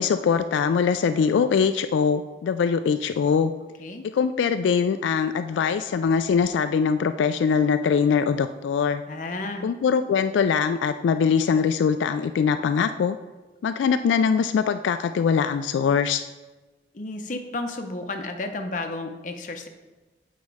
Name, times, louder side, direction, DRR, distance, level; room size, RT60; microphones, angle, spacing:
voice 1, 0.0-3.5 4.1-9.0 9.6-13.2 13.6-16.2, left 6 dB, 90° left, 10 dB, 0.3 m, -22 dB
voice 2, 9.1-9.7 16.9-19.7, left 2 dB, 45° left, 5 dB, 0.7 m, -32 dB
8.1 x 4.2 x 4.8 m, 1.2 s
head